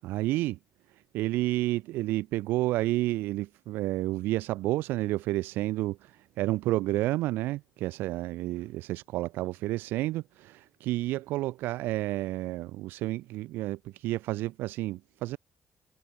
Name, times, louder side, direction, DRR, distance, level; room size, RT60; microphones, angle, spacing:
voice 1, 0.0-0.6 1.1-15.4, right 17 dB, 80° right, 0.8 m, -30 dB
supercardioid pair, 65°, 3 cm